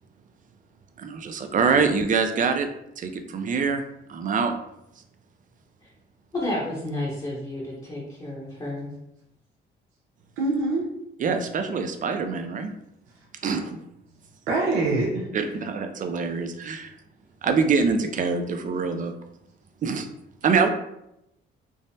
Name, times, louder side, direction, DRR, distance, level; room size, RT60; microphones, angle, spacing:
voice 1, 1.0-2.7 3.0-3.8 4.1-4.5 11.2-12.7 13.4-13.6 15.3-16.9 17.4-19.1 19.8-20.1 20.4-20.7, right 5 dB, 40° right, 6 dB, 0.4 m, -24 dB
voice 2, 6.3-8.9, left 1 dB, 25° left, -6 dB, 0.8 m, -31 dB
voice 3, 10.4-10.9 14.5-15.3, right 2 dB, 85° right, -4 dB, 0.7 m, -24 dB
3.4 x 2.0 x 2.6 m, 0.83 s
cardioid pair, 90°, 20 cm